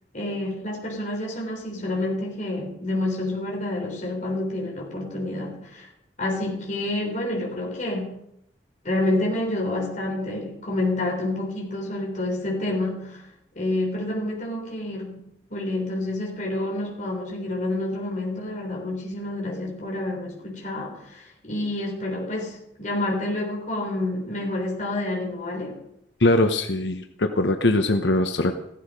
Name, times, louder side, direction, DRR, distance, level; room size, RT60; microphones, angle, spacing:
voice 1, 0.1-5.9 6.2-8.1 8.8-13.2 13.6-15.2 15.5-25.8, left 1 dB, 45° left, -1 dB, 3.7 m, -28 dB
voice 2, 26.2-28.5, left 2 dB, 90° left, 6 dB, 1.0 m, -21 dB
16.0 x 13.0 x 5.3 m, 0.78 s
head